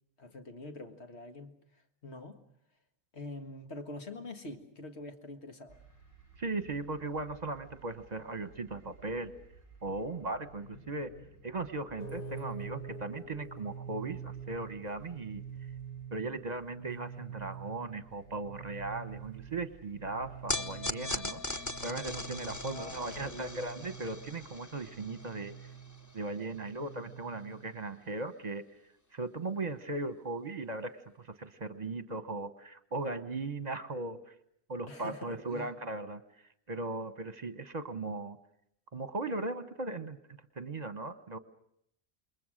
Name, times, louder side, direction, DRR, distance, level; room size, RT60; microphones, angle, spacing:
voice 1, 0.2-1.5 2.0-2.4 3.1-5.8 22.6-23.7 34.9-35.7, left 2 dB, 80° left, 6 dB, 2.0 m, -45 dB
sound 1, 5.7-23.3, right 3 dB, 60° left, 6.7 m, -57 dB
voice 2, 6.4-9.3 9.8-11.1 11.4-15.4 16.1-25.6 26.1-28.6 29.1-34.3 34.7-36.2 36.7-38.4 38.9-40.2 40.6-41.4, right 2 dB, 40° right, 12 dB, 1.1 m, -38 dB
sound 2, 12.0-27.8, right 6 dB, 35° left, 5.4 m, -46 dB
sound 3, 20.5-26.9, left 2 dB, 15° left, 0.9 m, -40 dB
27.5 x 22.0 x 6.4 m, 0.72 s
omnidirectional pair, 1.1 m